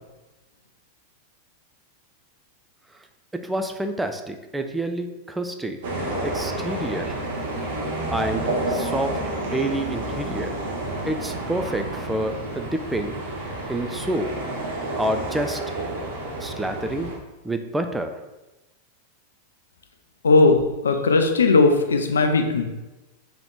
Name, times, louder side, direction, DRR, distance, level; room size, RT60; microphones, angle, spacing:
voice 1, 3.4-5.8 6.2-7.2 8.1-8.4 8.7-9.2 9.5-10.5 11.0-13.1 13.7-14.3 15.0-15.6 16.4-17.1 17.4-18.1, right 1 dB, 5° right, 6 dB, 0.4 m, -28 dB
sound 1, 5.8-17.2, right 1 dB, 55° right, 0.9 m, -30 dB
voice 2, 20.2-22.6, left 3 dB, 70° left, 5 dB, 0.4 m, -18 dB
3.7 x 2.9 x 3.7 m, 1.1 s
figure-of-eight pair, 90°, 0 cm